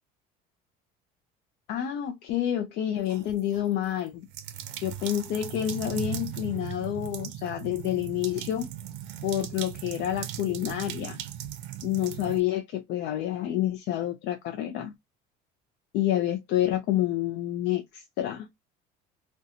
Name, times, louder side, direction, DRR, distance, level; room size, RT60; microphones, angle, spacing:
voice 1, 1.7-4.3 4.8-8.7 9.2-11.2 11.8-14.9 15.9-18.5, left 12 dB, 65° left, 0.4 m, -28 dB
sound 1, 3.1-3.7 4.3-12.4, right 11 dB, 80° right, 0.5 m, -38 dB
2.7 x 2.2 x 2.4 m
cardioid pair, 135°, 19 cm